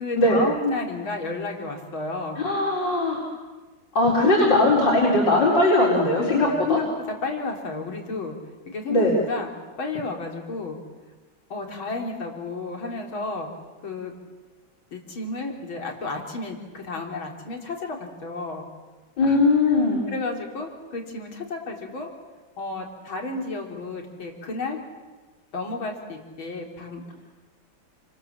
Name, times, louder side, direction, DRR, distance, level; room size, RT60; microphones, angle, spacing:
voice 1, 0.0-2.4 6.2-6.9 7.2-8.3 8.7-9.5 9.8-10.8 11.5-13.5 13.8-14.1 14.9-18.6 19.2-19.4 20.1-22.1 22.6-24.8 25.5-27.1, left 3 dB, 90° left, 1 dB, 4.3 m, -32 dB
voice 2, 2.4-3.3 3.9-6.8 8.9-9.1 19.2-20.0, left 2 dB, 65° left, -4 dB, 5.0 m, -20 dB
28.5 x 25.5 x 7.5 m, 1.3 s
omnidirectional pair, 2.1 m